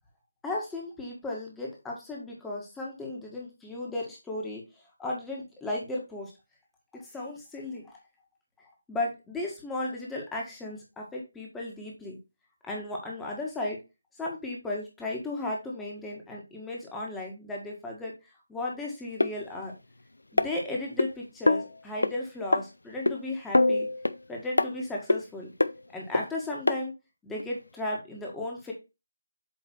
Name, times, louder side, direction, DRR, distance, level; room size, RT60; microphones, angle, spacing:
voice 1, 0.4-4.6 5.0-6.3 6.9-8.0 8.9-12.2 12.6-13.8 14.2-18.1 18.5-19.7 20.3-23.9 24.3-25.5 25.9-26.9 27.2-28.7, left 2 dB, 5° left, -2 dB, 1.6 m, -35 dB
sound 1, 19.2-19.3 20.4-21.1 21.5-21.7 22.0-22.1 22.5-22.6 23.1-23.2 23.5-24.2 24.6-24.7 25.1-25.2 25.6-25.7 26.1-26.2 26.7-26.8 27.4-27.5, left 2 dB, 90° left, 0.6 m, -23 dB
8.2 x 3.2 x 4.5 m, 0.26 s
figure-of-eight pair, 165°, 0 cm